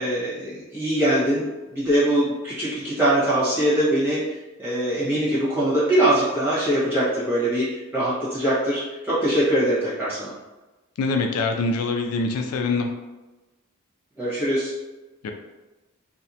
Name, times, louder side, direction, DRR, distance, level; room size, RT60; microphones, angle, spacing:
voice 1, 0.0-10.3 14.2-14.7, right 1 dB, 10° right, -11 dB, 1.2 m, -22 dB
voice 2, 11.0-12.9 15.2-15.3, left 3 dB, 85° left, 4 dB, 0.3 m, -24 dB
2.7 x 2.1 x 2.7 m, 1.1 s
head